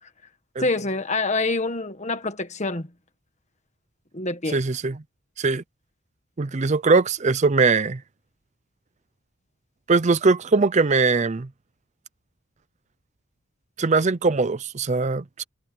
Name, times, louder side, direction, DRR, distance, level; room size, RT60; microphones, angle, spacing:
voice 1, 0.6-2.9 4.1-4.6, left 3 dB, 35° left, 1.6 m, -26 dB
voice 2, 4.5-5.0 5.4-5.6 6.4-8.0 9.9-11.5 13.8-15.4, right 4 dB, 35° right, 0.5 m, -21 dB
head